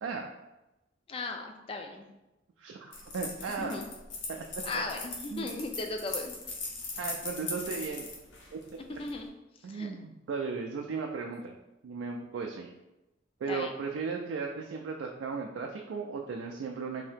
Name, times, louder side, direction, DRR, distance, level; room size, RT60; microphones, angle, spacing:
voice 1, 1.1-2.1 3.6-3.9 4.6-6.3 9.0-9.3 9.7-10.0 13.5-13.7, left 3 dB, 30° left, 4 dB, 0.3 m, -37 dB
voice 2, 2.6-3.8 4.3-4.4 5.3-5.5 7.0-8.1 8.5-8.6 9.6-11.5 11.8-12.7 13.4-17.1, right 5 dB, 85° right, 2 dB, 0.3 m, -36 dB
sound 1, 2.9-9.2, left 3 dB, 85° left, 0.7 m, -39 dB
2.7 x 2.7 x 3.4 m, 0.98 s
head